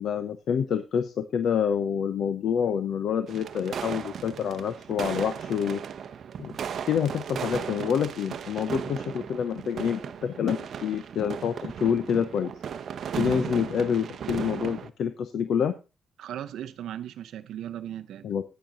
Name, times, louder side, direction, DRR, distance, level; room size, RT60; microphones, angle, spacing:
voice 1, 0.0-5.8 6.4-6.5 6.9-12.5 13.2-15.7 18.2-18.4, left 7 dB, 60° left, 0.8 m, -27 dB
sound 1, 3.3-14.9, right 8 dB, 50° right, 0.7 m, -36 dB
voice 2, 16.2-18.3, right 11 dB, 85° right, 0.6 m, -37 dB
10.5 x 9.2 x 3.8 m
cardioid pair, 170°, 0 cm